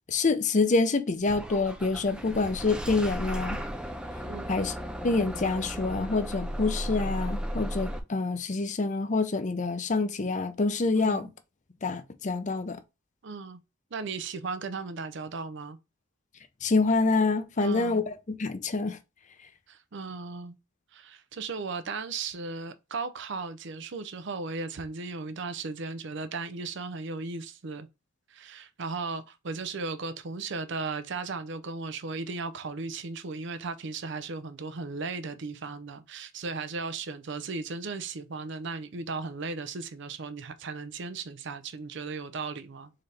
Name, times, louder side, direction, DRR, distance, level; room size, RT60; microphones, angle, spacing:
voice 1, 0.1-3.6 4.5-4.7 5.0-11.3 11.8-12.8 16.6-19.0, left 3 dB, 40° left, 0.6 m, -26 dB
Bus / Engine starting, 1.3-8.0, equal, 5° right, 0.5 m, -35 dB
voice 2, 13.2-13.6 13.9-15.8 17.6-18.0 19.7-20.6 20.9-27.9 28.3-42.9, right 4 dB, 65° right, 0.6 m, -36 dB
4.1 x 3.8 x 3.3 m
head